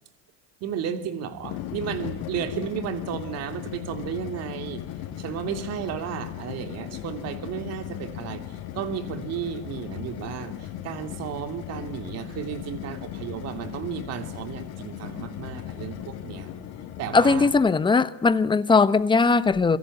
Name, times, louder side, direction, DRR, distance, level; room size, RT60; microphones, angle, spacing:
voice 1, 0.6-4.8 5.2-16.5 17.0-17.5, right 8 dB, 50° right, 3.0 m, -33 dB
sound 1, 1.3-17.8, left 11 dB, 50° left, 6.1 m, -37 dB
voice 2, 17.1-19.8, left 4 dB, 15° left, 1.1 m, -19 dB
27.5 x 24.0 x 8.7 m
cardioid pair, 145°, 33 cm